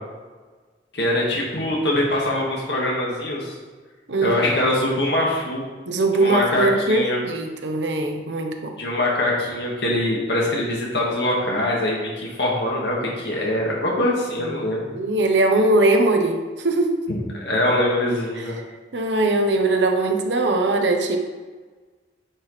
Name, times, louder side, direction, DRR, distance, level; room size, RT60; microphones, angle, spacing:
voice 1, 0.9-3.5 4.2-5.6 6.2-7.2 8.8-14.9 17.1-17.2 17.4-18.5, left 1 dB, 70° left, -3 dB, 1.8 m, -23 dB
voice 2, 4.1-4.4 5.9-8.7 14.4-17.1 18.9-21.2, right 2 dB, 90° right, 4 dB, 0.9 m, -21 dB
9.4 x 5.9 x 3.3 m, 1.4 s
head